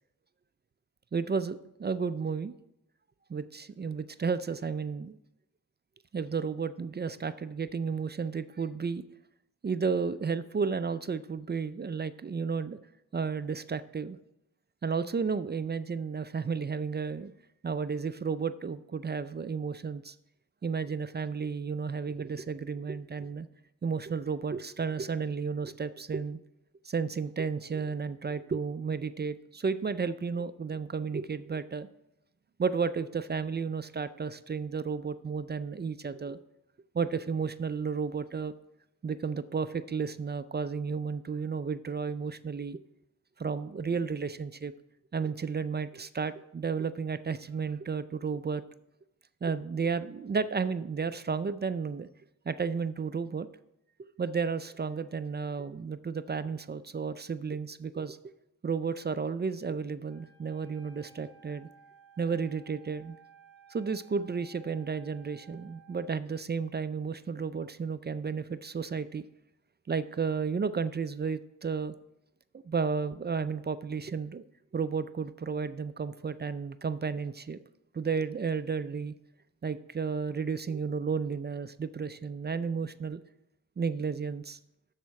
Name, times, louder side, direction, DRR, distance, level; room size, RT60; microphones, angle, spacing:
voice 1, 1.1-2.5 3.3-5.2 6.1-9.0 9.6-12.8 13.1-14.2 14.8-17.3 17.6-20.1 20.6-23.5 23.8-26.4 26.8-31.9 32.6-36.4 36.9-38.5 39.0-42.8 43.4-44.7 45.1-48.6 49.4-52.1 52.5-53.5 54.0-58.2 58.6-61.7 62.2-63.2 63.7-69.2 69.9-71.9 72.6-74.4 74.7-77.6 77.9-79.1 79.6-83.2 83.8-84.6, right 5 dB, 30° right, 13 dB, 0.4 m, -32 dB
Wind instrument woodwind instrument, 60.1-66.0, right 6 dB, 40° left, 2.3 m, -58 dB
12.0 x 4.2 x 4.7 m, 0.84 s
cardioid pair, 65°, 35 cm